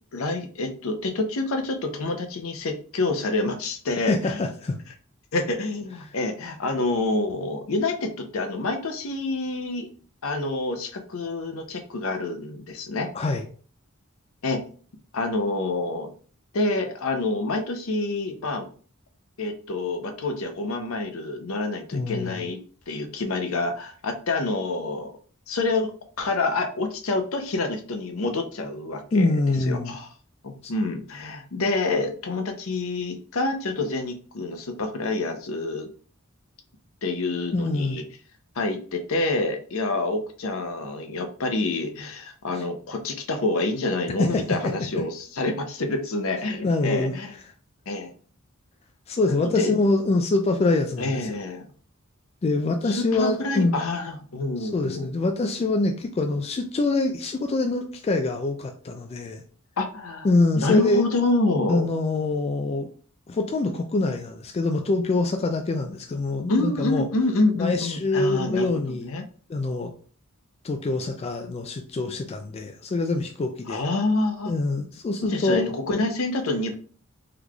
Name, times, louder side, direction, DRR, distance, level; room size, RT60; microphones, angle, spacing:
voice 1, 0.1-4.5 5.3-9.9 10.2-13.1 14.4-14.6 15.1-16.1 16.5-18.7 19.4-22.6 22.9-25.1 25.5-25.9 26.2-29.2 29.7-30.1 30.4-35.9 37.0-38.0 38.6-47.4 47.9-48.1 49.3-49.7 51.0-51.7 52.9-55.1 59.8-60.3 60.6-61.8 66.5-68.7 69.0-69.2 73.7-74.5 75.2-76.7, left 2 dB, 70° left, 5 dB, 0.6 m, -27 dB
voice 2, 4.1-4.8 13.1-13.4 21.9-22.5 29.1-30.0 30.6-30.7 37.5-38.0 42.5-42.6 44.2-44.7 46.6-47.2 49.1-51.4 52.4-53.7 54.6-59.4 60.2-61.0 61.7-62.9 63.3-67.1 67.6-69.1 69.5-69.9 70.6-73.8 74.5-75.6, left 2 dB, 30° left, 5 dB, 0.3 m, -25 dB
3.8 x 3.1 x 2.3 m, 0.42 s
head